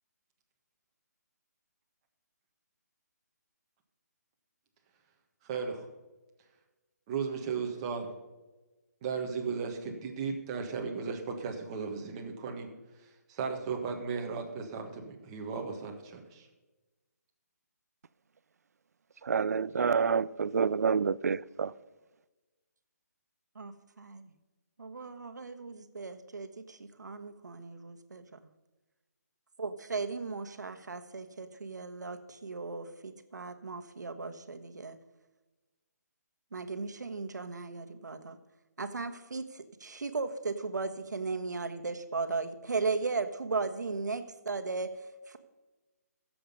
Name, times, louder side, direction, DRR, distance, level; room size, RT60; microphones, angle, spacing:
voice 1, 5.4-5.9 7.1-8.1 9.0-12.7 13.3-14.5 14.7-14.8 15.3-16.5, right 5 dB, 20° right, 1.6 m, -35 dB
voice 2, 19.2-21.7, right 6 dB, 65° right, 0.5 m, -28 dB
voice 3, 23.5-24.3 24.8-28.4 29.6-35.0 36.5-38.4 38.8-45.4, right 4 dB, 90° right, 1.4 m, -36 dB
15.0 x 7.8 x 5.4 m
hypercardioid pair, 170°, 9 cm